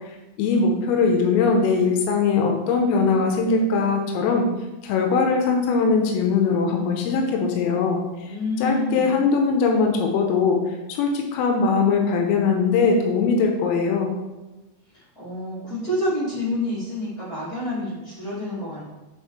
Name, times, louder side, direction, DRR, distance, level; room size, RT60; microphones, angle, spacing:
voice 1, 0.1-4.5 4.8-8.3 8.6-14.1, left 4 dB, 85° left, 2 dB, 3.3 m, -21 dB
voice 2, 8.2-9.2 14.9-18.8, left 1 dB, 40° left, -10 dB, 1.2 m, -28 dB
10.0 x 4.3 x 3.1 m, 1.1 s
omnidirectional pair, 6.0 m